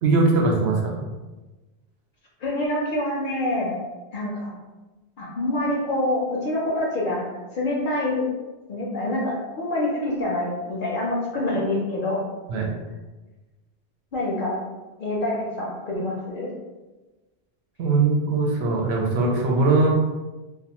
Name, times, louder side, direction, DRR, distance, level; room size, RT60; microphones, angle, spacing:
voice 1, 0.0-1.0 12.5-12.7 17.8-19.9, right 3 dB, 85° right, 0 dB, 0.8 m, -20 dB
voice 2, 2.4-3.7 4.1-4.6 5.2-8.2 8.7-12.2 14.1-14.6 15.0-16.5, left 1 dB, 60° left, -3 dB, 0.6 m, -26 dB
2.3 x 2.3 x 2.8 m, 1.2 s
omnidirectional pair, 1.1 m